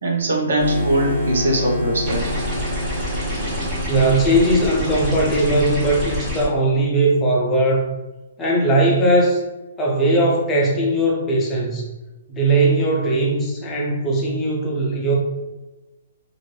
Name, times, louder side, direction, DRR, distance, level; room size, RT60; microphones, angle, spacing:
voice 1, 0.0-2.3, right 1 dB, 80° right, 0 dB, 0.8 m, -21 dB
sound 1, 0.6-5.0, left 2 dB, 40° right, 1.4 m, -28 dB
sound 2, 2.1-6.5, equal, 20° right, 0.9 m, -27 dB
voice 2, 3.9-7.9 8.4-9.4 9.8-11.9 12.3-15.2, right 1 dB, 15° left, -3 dB, 0.5 m, -19 dB
2.5 x 2.5 x 3.2 m, 1.1 s
hypercardioid pair, 165°, 0 cm